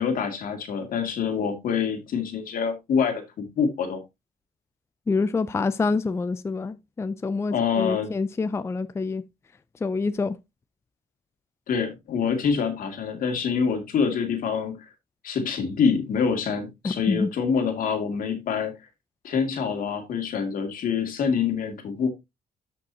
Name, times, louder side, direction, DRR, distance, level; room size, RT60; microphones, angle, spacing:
voice 1, 0.0-4.0 7.5-8.1 11.7-14.8 15.2-18.7 19.2-22.1, left 6 dB, 70° left, 2.4 m, -26 dB
voice 2, 5.1-9.2 9.8-10.4 16.8-17.3, left 4 dB, 20° left, 0.4 m, -26 dB
13.0 x 5.3 x 2.8 m
cardioid pair, 135°, 15 cm